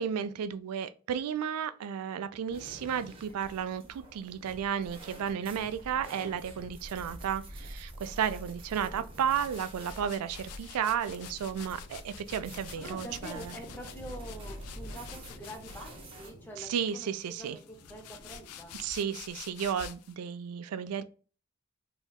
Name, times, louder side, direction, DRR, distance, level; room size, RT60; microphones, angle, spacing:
voice 1, 0.0-13.5 16.6-17.6 18.8-21.0, right 8 dB, 80° right, 0.3 m, -33 dB
sound 1, 2.5-18.8, equal, 45° left, 1.4 m, -55 dB
sound 2, 2.5-16.3, right 1 dB, 25° right, 0.8 m, -47 dB
sound 3, 9.3-16.1 16.9-20.1, left 7 dB, 85° left, 0.4 m, -48 dB
voice 2, 12.7-18.7, equal, 10° left, 0.5 m, -46 dB
3.2 x 2.7 x 2.2 m
head